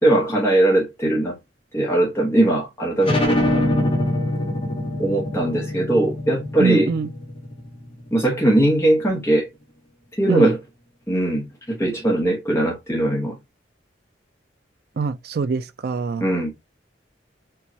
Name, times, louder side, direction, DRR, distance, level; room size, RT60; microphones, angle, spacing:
voice 1, 0.0-1.4 1.7-3.4 5.0-6.9 8.1-9.5 10.1-10.6 11.1-13.4 16.2-16.5, right 1 dB, 15° left, 0.9 m, -20 dB
sound 1, 3.0-8.3, left 1 dB, 30° left, 1.1 m, -24 dB
voice 2, 6.6-7.1 10.3-10.5 15.0-16.2, right 5 dB, 55° right, 0.4 m, -23 dB
4.5 x 2.2 x 2.7 m
head